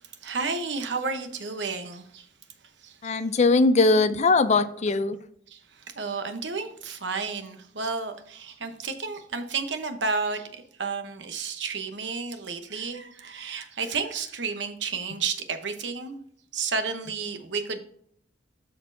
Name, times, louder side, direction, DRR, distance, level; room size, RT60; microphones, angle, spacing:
voice 1, 0.0-2.3 2.8-3.2 5.5-16.2 16.5-17.8, right 4 dB, 70° right, 7 dB, 1.0 m, -32 dB
voice 2, 3.0-5.2, left 3 dB, 40° left, 12 dB, 0.4 m, -20 dB
13.0 x 4.3 x 2.7 m, 0.65 s
head